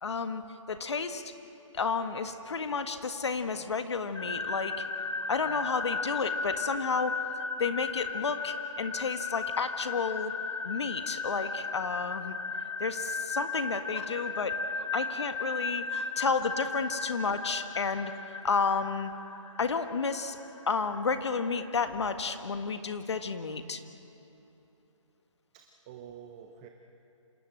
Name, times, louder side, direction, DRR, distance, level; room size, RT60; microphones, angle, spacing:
voice 1, 0.0-0.4 0.7-1.2 1.7-4.8 5.3-7.2 7.6-10.3 10.6-12.3 12.8-14.6 14.9-18.1 18.4-19.1 19.6-20.4 20.7-23.8, left 5 dB, 60° left, 8 dB, 1.6 m, -31 dB
sound 1, 4.2-22.1, left 4 dB, 85° left, 3.1 m, -36 dB
voice 2, 25.5-26.7, right 9 dB, 10° right, 4 dB, 0.6 m, -49 dB
27.0 x 18.0 x 7.9 m, 3.0 s
hypercardioid pair, 165°, 17 cm